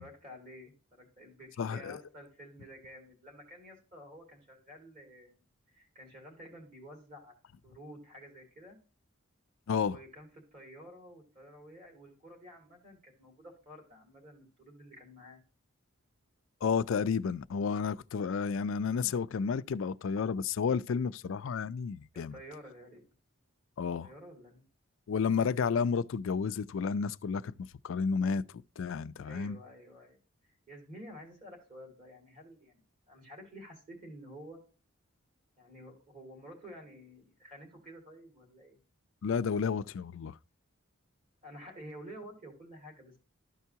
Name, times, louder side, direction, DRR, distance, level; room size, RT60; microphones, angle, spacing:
voice 1, 0.0-5.4 5.7-7.3 7.6-8.8 9.8-15.4 22.1-23.0 24.0-24.7 29.2-30.2 30.4-32.8 33.1-34.6 35.6-38.8 41.4-43.2, equal, 35° right, 2.7 m, -51 dB
voice 2, 1.6-2.0 9.7-10.0 16.6-22.4 23.8-24.1 25.1-29.6 39.2-40.4, left 6 dB, 65° left, 0.4 m, -31 dB
13.0 x 4.6 x 2.8 m
head